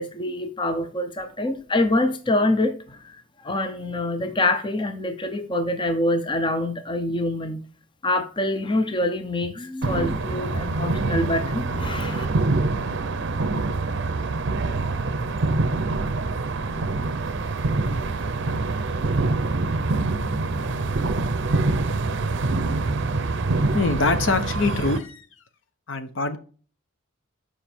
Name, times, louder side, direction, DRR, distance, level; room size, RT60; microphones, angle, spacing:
voice 1, 0.0-7.6 8.0-12.3, left 1 dB, 20° left, 0.6 m, -25 dB
sound 1, 9.8-25.0, right 3 dB, 55° right, 0.6 m, -25 dB
voice 2, 23.7-25.3 25.9-26.4, left 3 dB, 60° left, 0.8 m, -24 dB
7.2 x 5.0 x 4.4 m
head